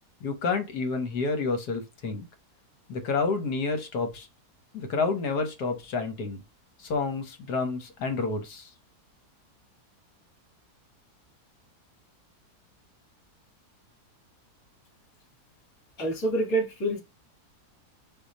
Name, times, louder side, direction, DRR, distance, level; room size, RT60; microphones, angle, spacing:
voice 1, 0.2-2.2 2.9-4.3 4.7-6.4 6.8-8.7, left 4 dB, 80° left, 1.6 m, -29 dB
voice 2, 16.0-17.0, right 2 dB, 60° left, 2.1 m, -27 dB
4.3 x 2.8 x 4.0 m
omnidirectional pair, 1.7 m